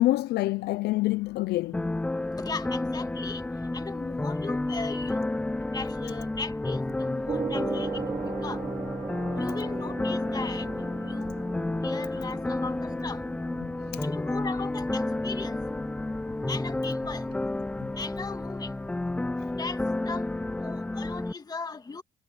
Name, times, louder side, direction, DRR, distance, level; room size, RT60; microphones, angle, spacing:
voice 1, 0.0-1.9 13.6-14.0, left 17 dB, 75° left, 0.6 m, -27 dB
sound 1, 1.7-21.3, left 2 dB, 5° left, 0.3 m, -31 dB
voice 2, 2.4-3.4 3.7-5.2 5.7-7.9 8.2-8.6 9.4-10.7 11.0-11.3 11.8-13.2 14.0-15.6 16.5-17.3 18.0-18.7 19.6-19.8 20.1-20.2 20.6-22.0, left 4 dB, 25° left, 2.4 m, -37 dB
Gong, 7.3-19.2, right 5 dB, 30° right, 3.0 m, -39 dB
cardioid pair, 110°, 17 cm